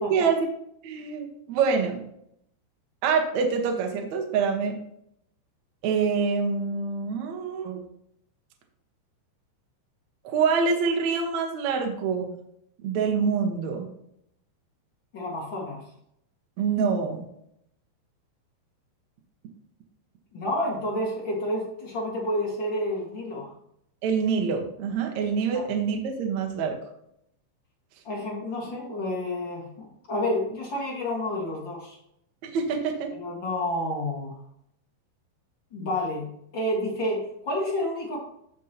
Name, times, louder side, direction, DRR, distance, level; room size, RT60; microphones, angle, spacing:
voice 1, 0.1-0.5 0.8-2.0 3.0-4.8 5.8-7.8 10.2-12.4 12.8-13.9 16.6-17.2 24.0-26.8 32.4-33.1, right 5 dB, 80° right, 2 dB, 1.6 m, -26 dB
voice 2, 15.1-15.8 20.3-23.5 25.5-25.6 28.0-32.0 33.2-34.3 35.7-38.2, left 1 dB, 70° left, -4 dB, 1.1 m, -30 dB
14.5 x 5.4 x 3.0 m, 0.74 s
omnidirectional pair, 5.6 m